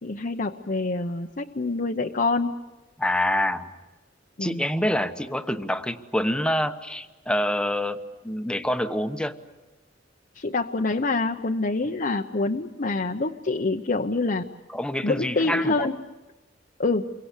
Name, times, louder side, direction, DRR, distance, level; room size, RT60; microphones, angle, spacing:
voice 1, 0.0-2.6 4.4-4.6 10.3-14.5 15.0-16.0 16.8-17.1, left 3 dB, 45° left, 3 dB, 0.9 m, -26 dB
voice 2, 3.0-3.7 4.4-9.4 14.7-15.9, left 1 dB, 5° left, 8 dB, 1.1 m, -26 dB
28.5 x 23.5 x 8.3 m, 1.2 s
head